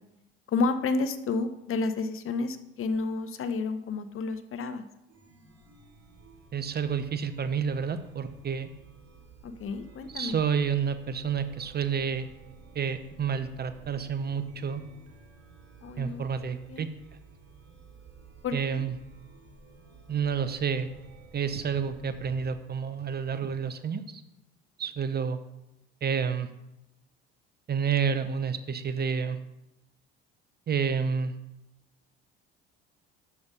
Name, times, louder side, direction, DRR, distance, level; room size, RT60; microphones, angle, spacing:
voice 1, 0.5-4.8 9.4-10.4 15.8-16.3 16.7-16.9 18.4-18.8, left 3 dB, 45° left, 10 dB, 0.8 m, -30 dB
Chime, 5.1-22.5, right 4 dB, 55° right, 2.0 m, -53 dB
voice 2, 6.5-8.7 10.1-12.3 12.7-14.8 16.0-16.9 18.5-18.9 20.1-20.9 21.3-24.2 24.8-25.4 26.0-26.5 27.7-29.4 30.7-31.3, right 6 dB, 30° right, 11 dB, 0.7 m, -29 dB
7.0 x 6.3 x 5.3 m, 0.90 s
hypercardioid pair, 65°, 31 cm